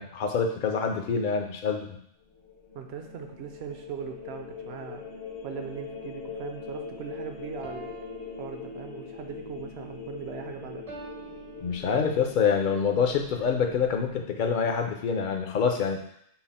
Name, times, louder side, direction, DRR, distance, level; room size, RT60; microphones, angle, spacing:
voice 1, 0.0-2.0 11.6-16.0, left 6 dB, 55° left, 4 dB, 0.6 m, -26 dB
sound 1, 2.2-14.1, left 5 dB, 80° left, 1.2 m, -42 dB
voice 2, 2.7-5.0 5.4-7.9 8.4-10.9, right 8 dB, 65° right, 5 dB, 0.8 m, -40 dB
sound 2, 7.6-9.2 10.9-12.4, right 3 dB, 40° right, 0.5 m, -46 dB
5.7 x 2.0 x 4.1 m, 0.70 s
omnidirectional pair, 1.2 m